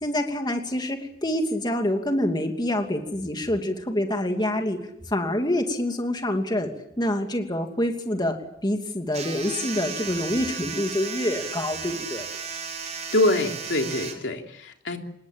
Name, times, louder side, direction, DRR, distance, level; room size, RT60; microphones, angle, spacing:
voice 1, 0.0-4.8 5.1-6.7 7.0-8.4 8.6-12.3, left 1 dB, 25° left, 4 dB, 2.7 m, -26 dB
sound 1, 9.1-14.1, right 6 dB, 40° right, 6.2 m, -34 dB
voice 2, 13.1-15.0, left 1 dB, 85° left, 4 dB, 3.3 m, -24 dB
26.5 x 21.0 x 8.9 m, 0.76 s
head